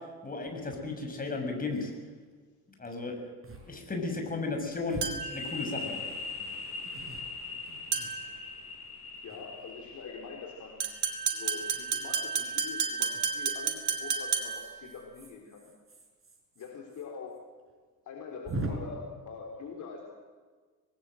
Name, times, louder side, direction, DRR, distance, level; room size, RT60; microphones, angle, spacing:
voice 1, 0.2-1.9 2.8-3.3 3.7-6.0, left 3 dB, 20° left, 3 dB, 6.4 m, -34 dB
sound 1, 0.7-0.8 1.3-1.4 1.6-2.0 2.8-3.0 3.4-3.7 4.0-4.1 4.9-5.8 6.4-8.6 9.1-9.9 11.6-11.9 13.1-13.5 14.2-17.1 17.3-17.4 17.7-17.8 18.4-18.7, right 2 dB, 30° right, 6.7 m, -43 dB
sound 2, 5.0-5.5 7.9-8.3 10.8-14.8, right 6 dB, 75° right, 2.9 m, -31 dB
sound 3, 5.2-12.7, left 4 dB, 75° left, 5.1 m, -42 dB
voice 2, 9.2-10.8 11.3-15.7 16.6-17.4 18.1-20.1, left 5 dB, 40° left, 0 dB, 3.8 m, -44 dB
26.0 x 19.0 x 7.8 m, 1.5 s
figure-of-eight pair, 65°, 46 cm